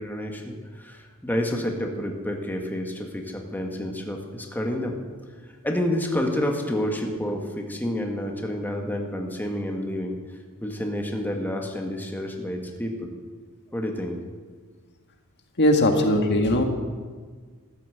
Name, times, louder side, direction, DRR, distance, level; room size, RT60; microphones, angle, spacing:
voice 1, 0.0-5.0 5.6-10.2 10.6-13.1 13.7-14.2 15.9-16.1 16.4-16.6, left 1 dB, 10° left, 2 dB, 1.8 m, -29 dB
voice 2, 15.6-16.6, left 1 dB, 50° left, 4 dB, 1.8 m, -19 dB
14.5 x 12.0 x 8.0 m, 1.5 s
head